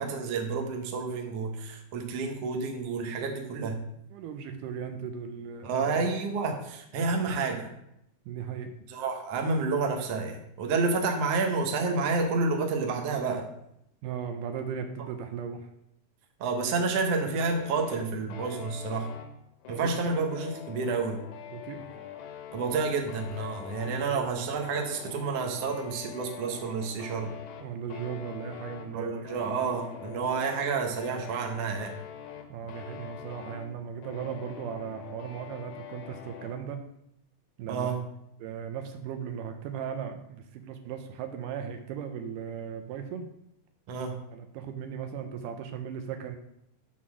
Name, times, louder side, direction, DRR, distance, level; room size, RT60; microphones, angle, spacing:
voice 1, 0.0-3.8 5.6-7.7 8.9-13.5 16.4-19.1 19.7-21.2 22.5-27.3 28.9-31.9 37.7-38.0 43.9-44.2, right 4 dB, 60° right, 2 dB, 1.8 m, -29 dB
voice 2, 4.1-6.1 8.3-8.7 14.0-15.7 19.7-19.9 21.5-21.9 24.1-24.2 27.6-29.6 32.5-36.8 37.6-37.9 38.4-43.3 44.3-46.4, right 7 dB, 80° right, 6 dB, 2.2 m, -37 dB
sound 1, 17.4-36.6, left 9 dB, 75° left, 2.1 m, -44 dB
7.5 x 4.2 x 6.0 m, 0.79 s
omnidirectional pair, 3.8 m